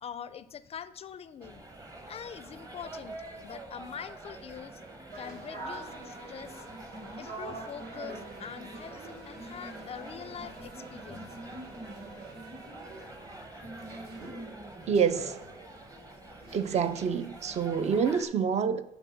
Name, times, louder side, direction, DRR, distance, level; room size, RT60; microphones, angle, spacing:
voice 1, 0.0-1.6 2.1-4.8 5.1-6.7 7.0-11.4, left 8 dB, 35° left, 0.4 m, -44 dB
sound 1, 1.4-18.3, right 1 dB, 20° right, 1.1 m, -45 dB
sound 2, 5.1-16.9, right 2 dB, 65° right, 1.8 m, -47 dB
sound 3, 5.8-13.3, right 2 dB, 85° right, 3.2 m, -53 dB
voice 2, 14.9-15.4 16.5-18.8, right 6 dB, 40° right, 0.5 m, -27 dB
9.8 x 3.7 x 5.7 m
cardioid pair, 110°, 17 cm